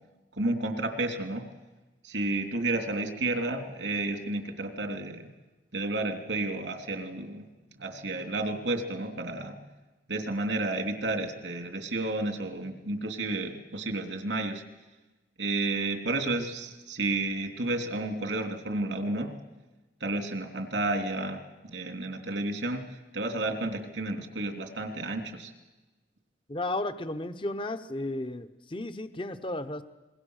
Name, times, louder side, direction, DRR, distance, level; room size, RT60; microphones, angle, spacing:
voice 1, 0.4-1.5 2.0-5.3 5.7-7.4 7.8-9.5 10.1-14.6 15.4-19.3 20.0-22.8 23.1-25.5, right 2 dB, 90° right, 5 dB, 3.1 m, -31 dB
voice 2, 26.5-29.8, left 2 dB, 30° left, 10 dB, 0.9 m, -34 dB
26.0 x 22.0 x 6.5 m, 1.1 s
head